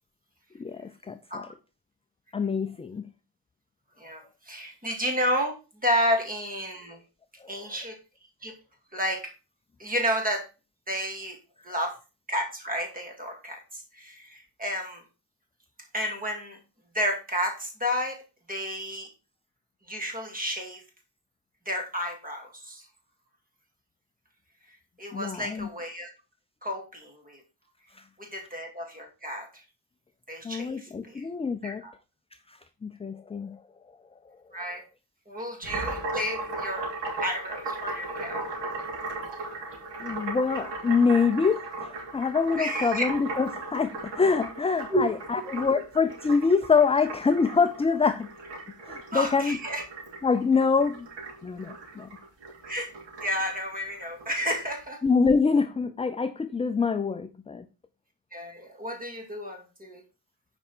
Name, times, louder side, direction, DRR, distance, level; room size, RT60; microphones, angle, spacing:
voice 1, 0.6-1.5 2.3-3.0 7.4-7.6 25.1-25.7 27.9-28.0 30.4-31.8 32.5-33.6 34.3-34.4 40.0-48.3 48.9-49.6 50.2-51.1 51.4-52.1 55.0-57.7, left 5 dB, 15° left, 0.4 m, -25 dB
voice 2, 4.0-7.0 7.5-8.0 8.4-8.5 8.9-9.2 9.8-10.5 10.9-11.4 11.6-11.9 12.3-15.0 15.9-16.6 16.9-18.2 18.5-19.1 19.9-20.8 21.7-22.9 25.0-26.1 26.6-27.4 28.2-29.6 30.3-31.2 31.6-31.9 34.5-34.8 35.3-36.9 37.2-38.4 42.6-43.1 44.9-45.0 49.1-49.8 52.7-52.9 53.2-55.0 58.3-60.0, equal, 20° right, 2.5 m, -31 dB
sound 1, 35.6-54.7, right 3 dB, 75° right, 3.2 m, -37 dB
8.9 x 5.1 x 4.3 m
cardioid pair, 120°, 43 cm